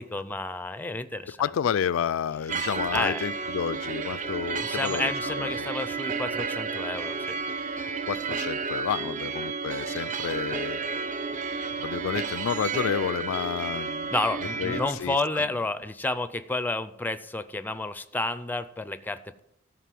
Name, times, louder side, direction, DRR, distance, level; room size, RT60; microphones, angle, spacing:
voice 1, 0.0-1.4 2.9-3.2 4.6-7.4 9.0-9.2 14.1-19.4, left 2 dB, 10° left, 0.4 m, -30 dB
voice 2, 1.3-5.7 8.1-10.9 11.8-14.1 14.6-15.5, left 8 dB, 80° left, 0.3 m, -30 dB
sound 1, 2.5-14.9, right 5 dB, 40° right, 0.5 m, -32 dB
13.5 x 5.0 x 7.5 m
head